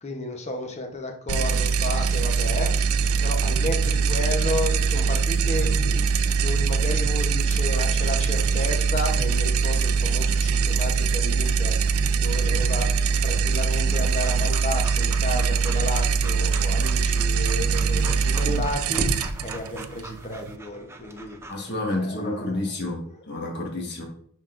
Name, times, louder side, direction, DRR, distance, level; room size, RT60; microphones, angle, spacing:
voice 1, 0.0-2.9 3.2-21.4 21.9-22.6 23.1-23.2, left 1 dB, 30° left, 0.9 m, -33 dB
sound 1, 1.3-20.6, right 5 dB, 70° right, 0.4 m, -23 dB
Breathing / Dog, 12.4-21.5, right 1 dB, 10° right, 0.4 m, -39 dB
voice 2, 21.5-24.0, left 2 dB, 50° left, 1.3 m, -29 dB
10.0 x 3.8 x 2.5 m
head